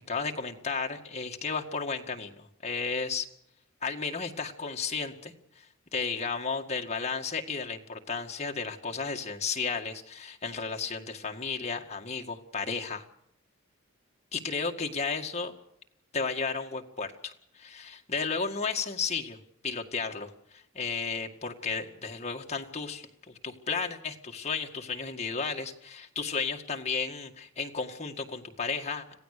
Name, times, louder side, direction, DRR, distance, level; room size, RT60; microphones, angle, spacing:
voice 1, 0.1-3.3 3.8-5.3 5.9-13.0 14.3-15.5 16.1-19.4 19.6-29.1, left 5 dB, 30° left, 2 dB, 1.9 m, -33 dB
26.5 x 16.0 x 6.8 m, 0.74 s
head